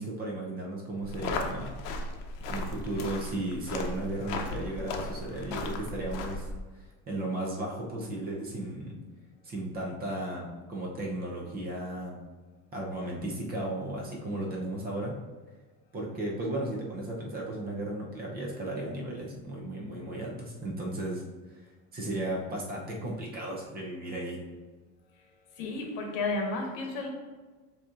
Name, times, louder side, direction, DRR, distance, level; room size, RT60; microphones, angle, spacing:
voice 1, 0.0-1.7 2.5-6.5 7.1-9.0 9.4-12.2 12.7-15.2 15.9-21.2 21.9-24.4, right 1 dB, 25° right, -2 dB, 0.6 m, -35 dB
sound 1, 1.0-6.6, left 2 dB, 80° left, 0.7 m, -36 dB
voice 2, 25.6-27.1, left 3 dB, 60° left, 2 dB, 1.0 m, -32 dB
7.1 x 2.8 x 2.4 m, 1.3 s
cardioid pair, 165°, 37 cm